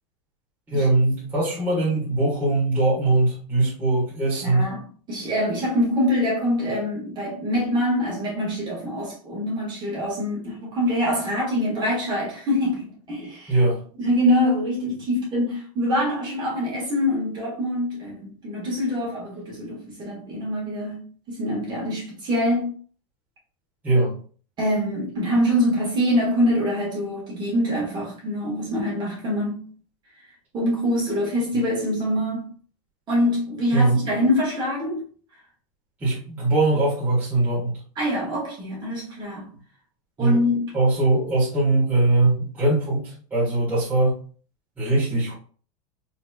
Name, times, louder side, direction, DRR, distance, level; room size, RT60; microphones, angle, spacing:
voice 1, 0.7-4.7 13.5-13.8 23.8-24.2 33.7-34.0 36.0-37.8 40.2-40.4 40.7-44.2 44.8-45.3, right 2 dB, 10° right, 1.5 m, -21 dB
voice 2, 4.4-4.8 5.1-13.5 14.0-22.7 24.6-29.7 30.5-32.5 33.1-35.0 37.9-39.5 40.2-40.6, left 1 dB, 25° right, 1.6 m, -24 dB
4.0 x 3.1 x 2.3 m
supercardioid pair, 155°, 18 cm